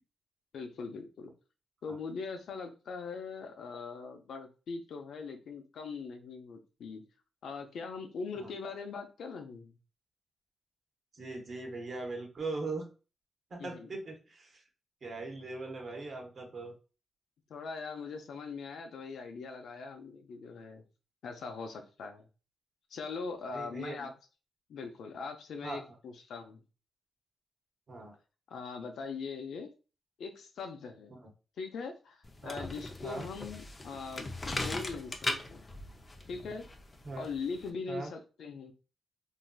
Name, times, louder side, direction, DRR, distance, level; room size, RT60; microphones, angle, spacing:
voice 1, 0.5-1.3 1.8-7.0 7.4-9.8 13.6-13.9 17.5-20.8 21.2-22.3 22.9-24.1 24.7-26.6 28.5-29.7 30.2-31.1 31.6-35.2 35.5-35.7 36.3-36.7 37.2-38.7, left 4 dB, 75° left, 5 dB, 0.5 m, -41 dB
voice 2, 11.1-12.9 13.5-14.6 15.0-16.7 23.5-24.1 25.6-25.8 27.9-28.2 31.1-31.3 32.4-32.6 33.0-33.3 37.0-37.3 37.9-38.1, right 3 dB, 50° right, 2 dB, 0.9 m, -40 dB
sound 1, 32.2-37.7, left 2 dB, 25° left, 0.5 m, -39 dB
3.2 x 2.6 x 2.3 m, 0.34 s
cardioid pair, 115°, 0 cm